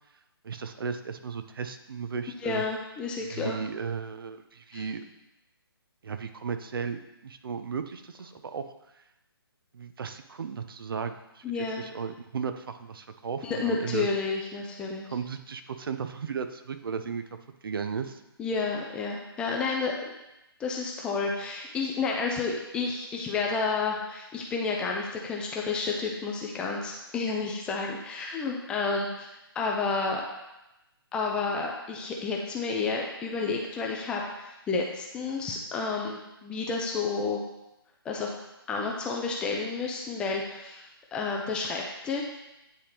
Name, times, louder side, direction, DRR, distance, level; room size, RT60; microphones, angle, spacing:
voice 1, 0.4-2.6 3.3-5.0 6.0-8.6 9.7-11.4 11.8-14.1 15.0-17.2 17.6-18.2, right 6 dB, 65° right, 9 dB, 0.6 m, -35 dB
voice 2, 2.4-3.6 4.7-4.8 11.4-11.8 13.4-15.1 18.4-20.1 20.6-29.3 29.6-30.2 31.1-37.4 38.1-38.3 38.7-42.2, left 4 dB, 5° left, -1 dB, 0.4 m, -30 dB
9.6 x 3.4 x 2.9 m, 0.94 s
figure-of-eight pair, 150°, 13 cm